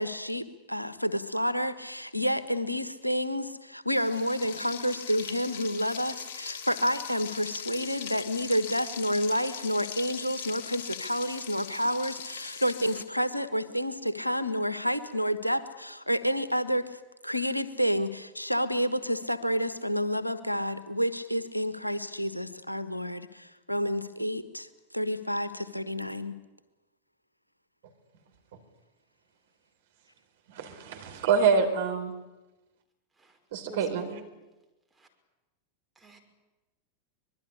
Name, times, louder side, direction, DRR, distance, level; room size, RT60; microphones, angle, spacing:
voice 1, 0.0-24.7 24.9-26.3, equal, 90° left, 12 dB, 1.4 m, -29 dB
Frying (food), 3.9-13.0, left 7 dB, 55° left, 2.6 m, -40 dB
voice 2, 30.5-32.1 33.5-34.0, right 5 dB, 55° right, 6 dB, 4.3 m, -26 dB
voice 3, 33.7-34.3 35.0-35.1 36.0-36.2, right 1 dB, 10° right, 2 dB, 5.6 m, -47 dB
24.5 x 21.5 x 9.8 m, 1.1 s
figure-of-eight pair, 90°, 0 cm